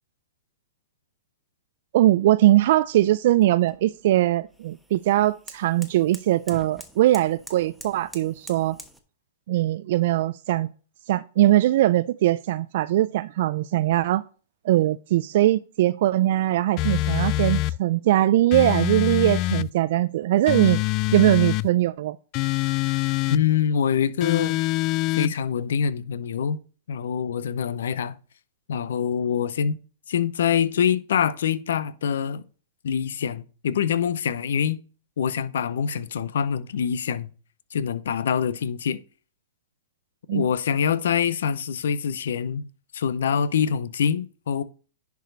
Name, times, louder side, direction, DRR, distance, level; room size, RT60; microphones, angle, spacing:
voice 1, 1.9-8.8 9.5-10.7 11.1-14.2 14.6-20.8 21.1-22.2 40.3-40.5, right 14 dB, 60° right, 0.3 m, -21 dB
sound 1, 2.2-9.0, equal, ahead, 1.2 m, -47 dB
sound 2, 16.8-17.8 18.5-19.7 20.5-21.7 22.3-23.4 24.2-25.3, left 17 dB, 40° left, 0.3 m, -24 dB
voice 2, 23.3-24.6 25.2-26.6 26.9-28.1 28.7-29.8 30.1-32.4 32.8-34.8 35.2-37.3 37.7-39.0 40.3-42.6 42.9-44.6, left 8 dB, 70° left, 0.7 m, -25 dB
10.5 x 4.9 x 3.9 m
hypercardioid pair, 115°, 0 cm